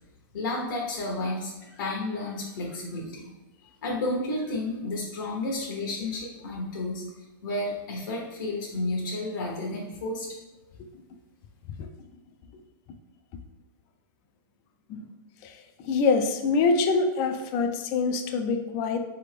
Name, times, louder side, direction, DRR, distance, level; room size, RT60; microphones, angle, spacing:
voice 1, 0.3-3.3 3.8-7.0 7.4-10.3, left 2 dB, 65° left, -2 dB, 0.9 m, -31 dB
voice 2, 15.8-19.0, left 4 dB, 25° left, 6 dB, 0.3 m, -25 dB
4.1 x 3.4 x 3.3 m, 1.0 s
hypercardioid pair, 165°, 12 cm